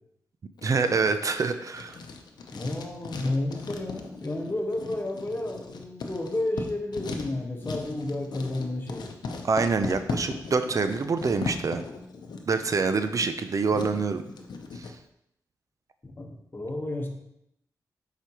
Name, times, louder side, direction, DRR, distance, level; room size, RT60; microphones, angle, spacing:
Writing, 0.6-14.9, left 4 dB, 85° left, 0.7 m, -38 dB
voice 1, 0.6-2.0 9.4-11.8 12.5-14.2 14.7-14.9, right 4 dB, 50° right, 9 dB, 0.5 m, -26 dB
voice 2, 2.5-9.1 16.0-17.1, left 2 dB, 30° left, 1 dB, 1.3 m, -31 dB
7.5 x 4.9 x 3.0 m, 0.78 s
cardioid pair, 70°, 7 cm